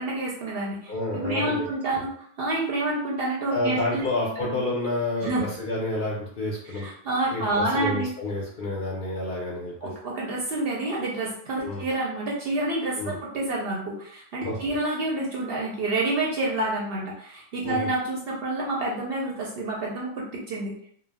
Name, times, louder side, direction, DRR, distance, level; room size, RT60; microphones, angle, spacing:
voice 1, 0.0-2.1 2.4-4.0 4.4-4.5 5.2-5.4 6.8-8.1 9.8-20.7, right 2 dB, 60° right, -2 dB, 0.7 m, -28 dB
voice 2, 0.9-1.7 1.9-2.1 3.5-6.9 7.3-9.9 11.6-11.8 13.0-13.2 14.4-14.6 17.6-17.9, left 2 dB, 55° left, -4 dB, 0.6 m, -29 dB
2.2 x 2.1 x 3.3 m, 0.63 s
omnidirectional pair, 1.3 m